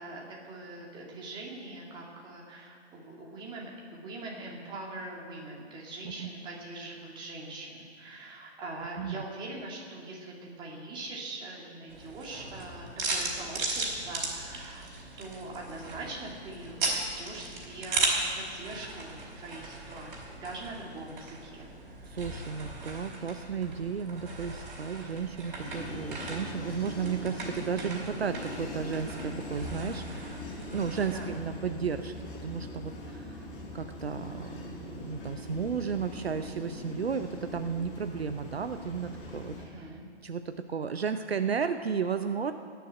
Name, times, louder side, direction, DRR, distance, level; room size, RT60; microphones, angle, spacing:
voice 1, 0.0-14.9 15.2-20.1 20.4-21.7 31.1-31.3 39.6-40.0, right 2 dB, 15° right, -2 dB, 2.4 m, -42 dB
sound 1, 11.9-31.3, right 3 dB, 45° right, 4.5 m, -37 dB
voice 2, 22.1-30.4 30.7-32.1 32.4-33.4 33.7-39.6 40.2-42.5, right 6 dB, 65° right, 9 dB, 0.8 m, -33 dB
sound 2, 25.6-39.6, left 2 dB, 25° left, 4.2 m, -42 dB
18.0 x 7.0 x 9.8 m, 2.1 s
figure-of-eight pair, 130°, 34 cm